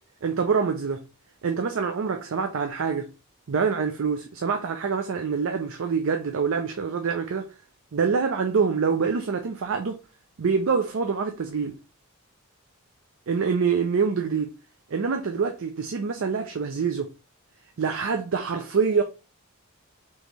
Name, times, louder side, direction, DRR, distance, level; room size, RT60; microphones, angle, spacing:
voice 1, 0.2-1.0 1.4-3.1 3.5-7.5 7.9-10.0 10.4-11.8 13.3-14.5 14.9-17.1 17.8-19.0, right 5 dB, 65° right, 0.5 m, -25 dB
3.5 x 3.2 x 4.0 m
head